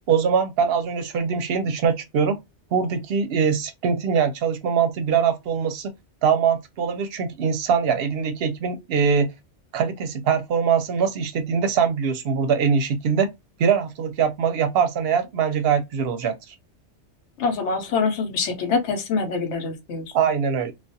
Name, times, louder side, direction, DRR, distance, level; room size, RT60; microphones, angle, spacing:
voice 1, 0.1-2.4 2.7-5.9 6.2-9.3 9.7-13.3 13.6-16.3 20.1-20.7, right 6 dB, 65° right, 0.7 m, -22 dB
voice 2, 17.4-20.0, left 4 dB, 75° left, 1.0 m, -25 dB
2.3 x 2.2 x 2.6 m
omnidirectional pair, 1.2 m